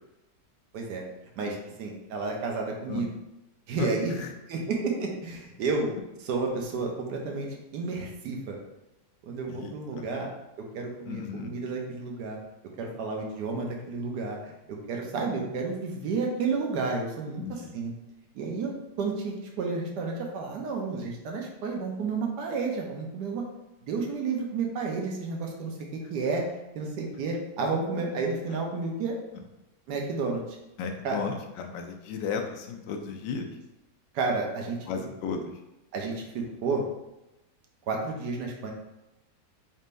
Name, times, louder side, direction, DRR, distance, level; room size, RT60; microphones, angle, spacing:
voice 1, 1.4-3.1 3.7-4.2 4.5-5.9 6.2-8.6 9.2-10.3 10.7-12.4 12.8-14.5 14.9-17.9 18.3-18.7 19.0-23.4 23.8-25.7 26.1-26.4 26.7-29.1 29.9-30.4 31.0-31.2 34.1-34.8 35.9-36.8 37.9-38.7, right 4 dB, 75° right, 1 dB, 1.3 m, -31 dB
voice 2, 3.8-4.3 9.5-10.1 11.0-11.5 17.4-17.8 30.8-33.6 34.9-35.5, left 5 dB, 85° left, 3 dB, 1.3 m, -35 dB
4.2 x 3.6 x 2.5 m, 0.96 s
omnidirectional pair, 1.9 m